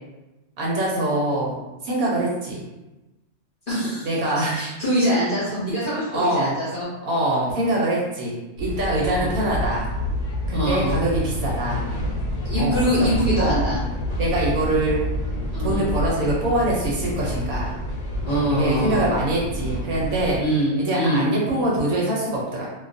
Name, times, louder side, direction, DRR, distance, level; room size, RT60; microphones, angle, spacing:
voice 1, 0.6-1.6 1.8-2.6 4.0-4.7 6.1-6.6 7.0-9.9 10.5-11.8 12.6-13.1 13.4-13.6 14.2-15.0 15.6-17.7 18.5-20.4 20.8-22.7, right 1 dB, 70° right, -4 dB, 0.9 m, -24 dB
voice 2, 3.7-4.1 4.5-6.9 9.0-9.3 10.5-10.9 12.4-13.8 15.5-15.8 18.3-19.1 20.4-21.2, equal, 45° left, -10 dB, 0.7 m, -23 dB
sound 1, 8.6-20.4, left 1 dB, 65° left, 1.0 m, -28 dB
2.4 x 2.2 x 2.5 m, 1.0 s
omnidirectional pair, 1.7 m